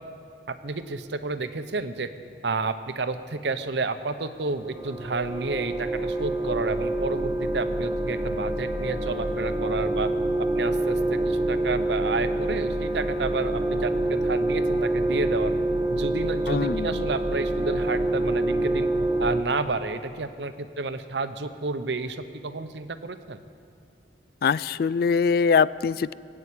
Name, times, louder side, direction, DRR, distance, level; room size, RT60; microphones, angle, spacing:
voice 1, 0.5-2.1 2.4-10.1 10.5-15.5 15.9-18.9 19.2-23.4, right 3 dB, 75° right, 10 dB, 0.8 m, -30 dB
sound 1, 4.6-19.4, right 1 dB, 10° right, 0.6 m, -26 dB
voice 2, 16.5-17.0 24.4-26.1, left 5 dB, 55° left, 19 dB, 0.3 m, -23 dB
19.0 x 8.8 x 8.4 m, 2.3 s
head